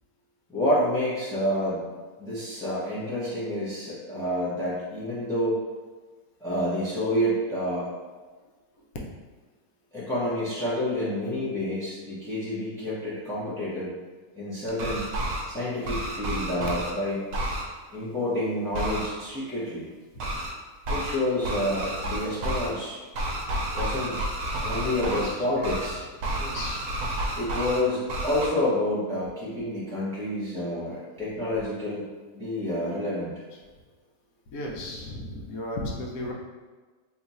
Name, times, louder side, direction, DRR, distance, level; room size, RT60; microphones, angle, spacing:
voice 1, 0.5-1.9 2.2-5.6 6.4-7.9 9.9-13.9 14.4-15.2 15.5-17.2 17.9-19.9 20.9-23.0 23.7-24.2 24.6-26.0 27.3-32.1 32.3-33.3, left 1 dB, 5° left, -9 dB, 0.4 m, -28 dB
sound 1, 14.7-15.4 15.8-16.9 17.3-17.6 18.7-19.1 20.2-20.5 20.8-21.2 21.4-22.7 23.1-25.3 25.6-25.9 26.2-27.8 28.1-28.5, right 1 dB, 75° right, 1.0 m, -30 dB
voice 2, 26.4-26.9 34.5-36.3, left 1 dB, 85° left, -1 dB, 1.1 m, -35 dB
2.9 x 2.4 x 4.1 m, 1.4 s
omnidirectional pair, 1.5 m